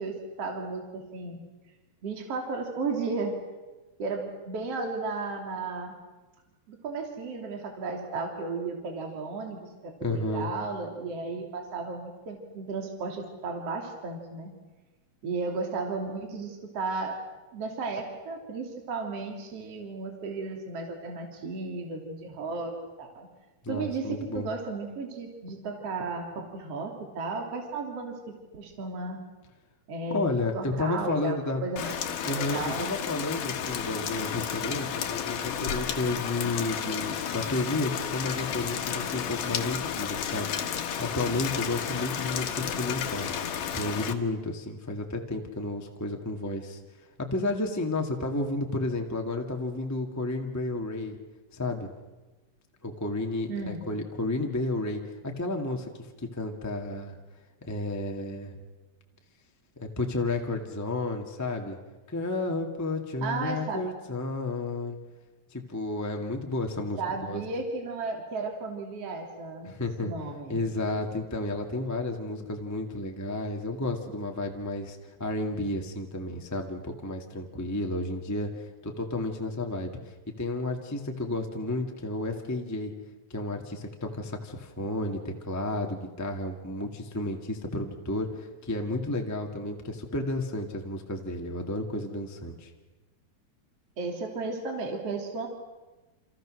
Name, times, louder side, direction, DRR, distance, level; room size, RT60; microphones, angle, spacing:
voice 1, 0.0-1.4 2.0-3.4 4.0-6.0 6.7-14.5 15.2-17.2 17.5-22.7 23.0-23.3 23.7-28.2 28.5-29.2 29.9-30.2 30.5-32.9 53.5-53.9 63.2-63.8 67.0-70.6 94.0-95.5, right 3 dB, 45° right, 2 dB, 3.8 m, -34 dB
voice 2, 10.0-10.5 23.6-24.5 30.1-31.6 32.3-40.5 41.0-43.3 43.7-46.8 47.2-51.2 51.5-51.9 52.8-55.9 56.2-57.2 57.7-58.5 59.8-61.8 62.1-65.0 65.5-67.4 69.6-70.1 70.5-78.5 78.8-79.9 80.4-82.9 83.3-92.7, left 2 dB, 5° left, 2 dB, 1.3 m, -32 dB
Rain, 31.8-44.1, left 8 dB, 70° left, 3.1 m, -32 dB
28.5 x 28.0 x 6.5 m, 1.2 s
omnidirectional pair, 3.9 m